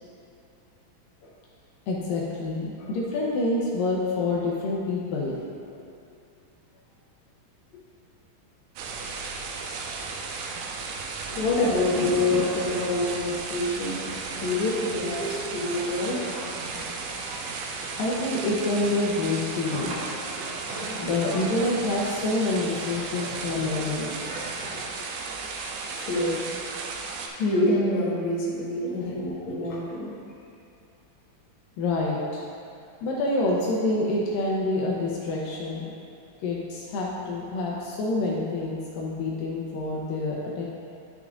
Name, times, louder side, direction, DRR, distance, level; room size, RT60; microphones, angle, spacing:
voice 1, 1.9-5.4 5.7-5.8 10.0-10.1 11.3-11.4 18.0-19.9 21.0-24.1 24.7-24.9 29.0-29.2 31.8-32.4 33.0-35.9 36.4-40.6, left 2 dB, 75° left, -4 dB, 2.4 m, -27 dB
sound 1, 8.8-27.3, right 4 dB, 90° right, 2.5 m, -35 dB
voice 2, 11.4-14.0 14.4-16.4 25.9-26.5 27.4-30.1, left 2 dB, 50° left, -7 dB, 1.9 m, -26 dB
sound 2, 14.0-24.9, right 2 dB, 60° right, 1.7 m, -40 dB
11.5 x 6.5 x 2.5 m, 2.6 s
omnidirectional pair, 4.2 m